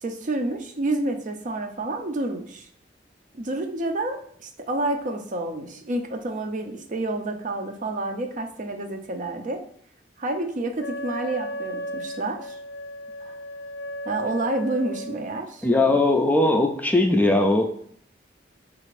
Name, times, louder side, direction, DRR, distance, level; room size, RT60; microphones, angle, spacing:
voice 1, 0.0-2.7 3.3-9.6 10.2-12.6 13.2-13.4 14.1-16.1, right 2 dB, 45° right, 5 dB, 0.5 m, -29 dB
Wind instrument woodwind instrument, 10.8-15.3, equal, 70° left, 0.5 m, -35 dB
voice 2, 15.6-17.6, left 2 dB, 10° left, 3 dB, 0.3 m, -19 dB
4.1 x 2.5 x 4.7 m, 0.64 s
head